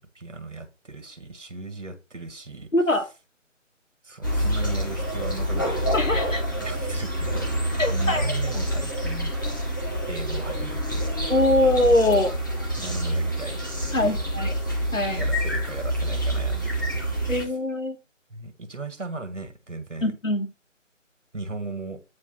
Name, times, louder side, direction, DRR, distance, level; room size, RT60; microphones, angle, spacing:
voice 1, 0.2-2.7 4.0-5.8 6.6-7.6 7.9-9.5 10.1-11.2 12.7-14.5 15.1-17.5 18.3-20.1 21.3-22.0, right 3 dB, 65° right, 1.9 m, -37 dB
voice 2, 2.7-3.1 5.9-6.4 7.8-8.3 11.3-12.3 13.9-14.5 14.9-15.2 17.3-18.0 20.0-20.5, left 1 dB, 80° left, 1.7 m, -22 dB
sound 1, 4.2-17.5, right 1 dB, 15° left, 0.8 m, -27 dB
8.8 x 3.3 x 5.7 m
figure-of-eight pair, 155°, 39 cm